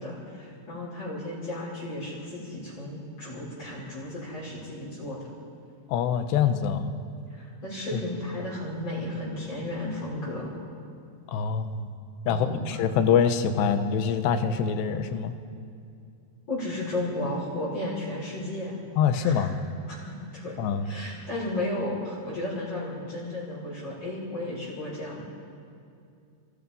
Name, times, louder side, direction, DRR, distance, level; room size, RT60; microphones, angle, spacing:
voice 1, 0.0-5.2 7.3-10.5 12.3-12.8 16.5-18.8 19.2-19.5 19.9-20.6 20.8-25.2, left 1 dB, 35° left, -8 dB, 7.2 m, -34 dB
voice 2, 5.9-6.9 11.3-11.9 12.3-15.4 19.0-19.5 20.6-20.9, left 7 dB, 85° left, 8 dB, 3.4 m, -24 dB
28.5 x 26.0 x 5.6 m, 2.4 s
omnidirectional pair, 4.8 m